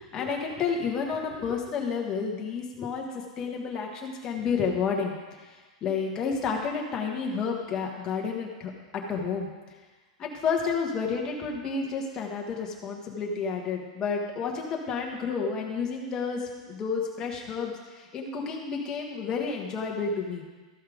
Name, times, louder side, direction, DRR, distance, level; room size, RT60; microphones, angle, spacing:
voice 1, 0.0-5.1 5.4-9.5 10.2-20.4, left 5 dB, 20° left, 0 dB, 1.3 m, -30 dB
14.0 x 5.6 x 5.0 m, 1.3 s
supercardioid pair, 175°, 4 cm